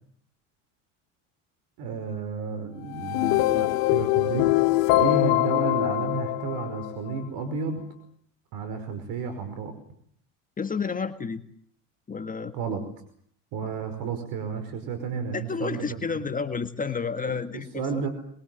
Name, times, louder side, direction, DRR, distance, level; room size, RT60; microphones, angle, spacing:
voice 1, 1.8-4.5 5.0-7.9 8.5-9.7 12.5-12.8 13.5-16.0 17.3-18.1, right 5 dB, 60° right, 8 dB, 5.3 m, -32 dB
sound 1, 2.9-7.2, left 19 dB, 65° left, 1.4 m, -23 dB
voice 2, 10.6-11.4 12.1-12.5 15.3-18.0, left 5 dB, 20° left, 7 dB, 1.8 m, -30 dB
25.0 x 23.0 x 7.8 m, 0.64 s
supercardioid pair, 100°, 39 cm